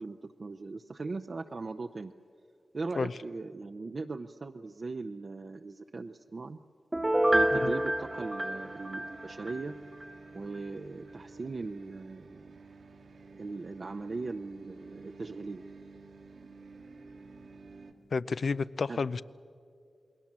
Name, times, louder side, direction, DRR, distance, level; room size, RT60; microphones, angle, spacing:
voice 1, 0.0-2.1 2.7-6.6 7.3-9.8 10.3-12.5 13.4-15.6 18.9-19.0, right 3 dB, 50° right, 4 dB, 0.7 m, -39 dB
Piano, 6.9-9.6 10.0-10.1, right 1 dB, 15° right, 0.9 m, -28 dB
sound 1, 7.2-17.9, right 3 dB, 80° right, 1.9 m, -50 dB
voice 2, 18.1-19.2, left 4 dB, 70° left, 16 dB, 0.5 m, -31 dB
28.0 x 21.0 x 7.4 m, 2.4 s
cardioid pair, 70°, 0 cm